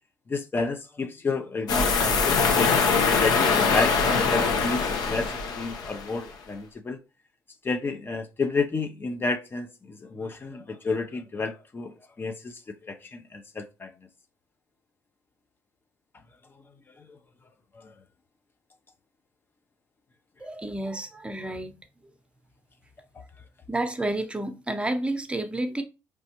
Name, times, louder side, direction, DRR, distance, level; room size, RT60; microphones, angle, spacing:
voice 1, 0.3-2.8 3.2-4.0 4.3-7.0 7.6-13.9 17.8-17.9, left 3 dB, 30° left, 0.6 m, -31 dB
sound 1, 1.7-6.1, left 5 dB, 65° left, 1.0 m, -23 dB
voice 2, 20.4-21.7 23.7-25.8, right 1 dB, 15° right, 0.8 m, -30 dB
4.2 x 3.2 x 2.9 m
hypercardioid pair, 65°, 7 cm